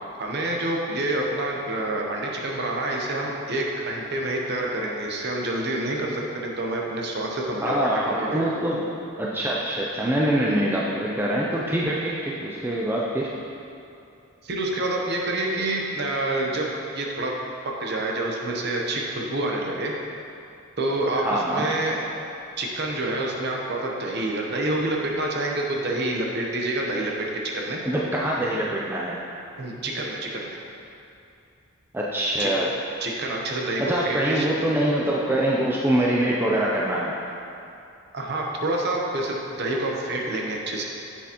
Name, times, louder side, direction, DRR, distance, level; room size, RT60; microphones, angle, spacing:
voice 1, 0.1-7.7 8.0-8.5 10.4-10.7 14.4-16.7 16.9-17.3 17.6-19.9 20.8-22.0 22.6-27.8 29.6-30.6 32.4-32.5 33.0-34.5 38.1-40.8, right 2 dB, 50° right, -1 dB, 0.8 m, -27 dB
voice 2, 7.6-8.9 9.2-13.3 21.1-21.7 27.9-29.2 31.9-32.7 33.8-37.1, right 1 dB, 10° right, -4 dB, 0.4 m, -24 dB
7.4 x 6.8 x 2.9 m, 2.6 s
head